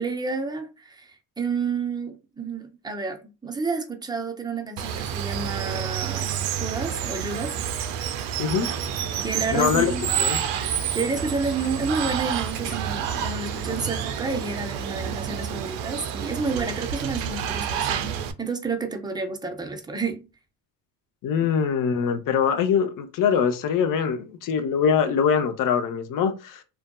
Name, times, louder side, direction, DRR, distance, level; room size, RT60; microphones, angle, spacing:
voice 1, 0.0-7.6 9.2-10.2 10.9-20.3, right 4 dB, 10° right, 0.5 m, -30 dB
Water, 4.8-18.3, right 9 dB, 70° right, 0.5 m, -29 dB
Screech, 8.7-14.5, right 1 dB, 5° left, 0.9 m, -40 dB
voice 2, 9.5-9.9 10.2-10.4 21.2-26.6, left 7 dB, 40° left, 0.6 m, -23 dB
2.5 x 2.2 x 2.2 m
hypercardioid pair, 70°, 49 cm